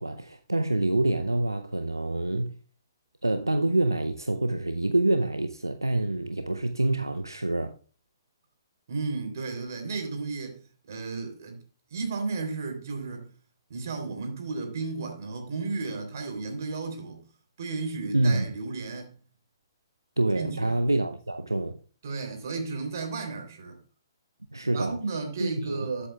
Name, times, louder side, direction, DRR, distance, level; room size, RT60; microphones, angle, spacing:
voice 1, 0.0-2.5 3.2-7.7 18.1-18.5 20.2-21.8 24.5-25.0 25.4-25.9, right 2 dB, 85° right, 0.6 m, -26 dB
voice 2, 8.9-10.6 10.9-11.6 11.9-13.3 13.7-17.2 17.6-19.1 20.3-20.8 22.0-23.8 24.7-26.1, right 4 dB, 55° right, 3.2 m, -33 dB
13.5 x 8.2 x 2.3 m
figure-of-eight pair, 120°, 2 cm